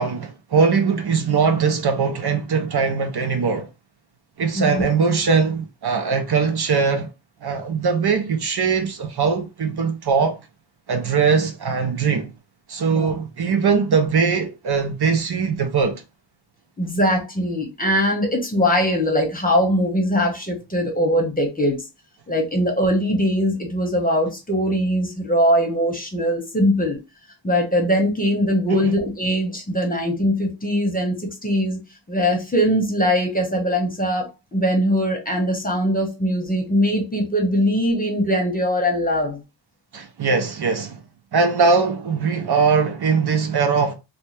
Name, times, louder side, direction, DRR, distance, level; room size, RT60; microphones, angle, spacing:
voice 1, 0.0-3.7 4.4-7.1 7.4-10.4 10.9-12.3 12.7-16.0 28.7-28.8 39.9-41.0 41.3-43.9, right 5 dB, 60° right, 0.5 m, -21 dB
voice 2, 4.5-4.8 12.9-13.1 16.8-21.8 22.3-27.0 27.4-31.8 32.1-39.4, equal, 20° left, 0.9 m, -21 dB
2.7 x 2.1 x 3.1 m
wide cardioid pair, 100°, 44 cm